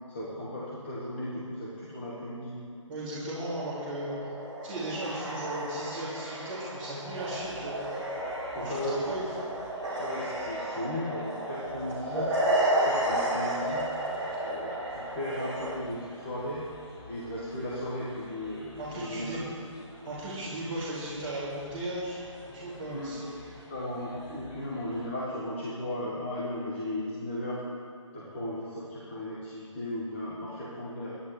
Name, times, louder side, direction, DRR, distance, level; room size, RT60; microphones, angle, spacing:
voice 1, 0.1-2.6 8.5-9.0 10.0-12.3 12.7-13.8 14.4-16.6 17.1-19.3 22.9-23.1 23.7-27.6 28.1-31.2, left 1 dB, 20° left, -7 dB, 1.5 m, -36 dB
voice 2, 2.9-4.1 4.6-7.8 8.6-9.2 18.8-19.5 20.0-22.2 22.4-23.4, right 1 dB, 20° right, -13 dB, 2.6 m, -36 dB
sound 1, 3.3-15.7, right 1 dB, 5° left, 2.6 m, -32 dB
sound 2, 7.0-25.1, left 1 dB, 45° left, 4.0 m, -51 dB
24.0 x 10.5 x 3.3 m, 2.5 s
hypercardioid pair, 175°, 17 cm